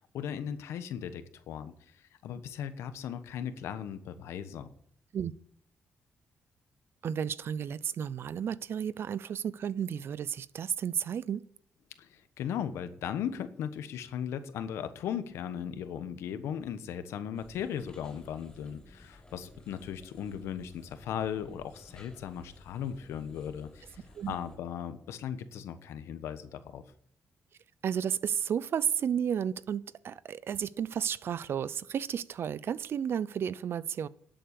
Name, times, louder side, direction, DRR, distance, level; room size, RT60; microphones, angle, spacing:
voice 1, 0.0-4.7 12.0-26.8, left 9 dB, 85° left, 1.2 m, -37 dB
voice 2, 7.0-11.5 24.2-24.4 27.8-34.1, right 8 dB, 60° right, 0.6 m, -32 dB
sound 1, 17.3-24.6, left 1 dB, 15° left, 4.9 m, -55 dB
11.5 x 7.9 x 8.3 m
cardioid pair, 75°, 5 cm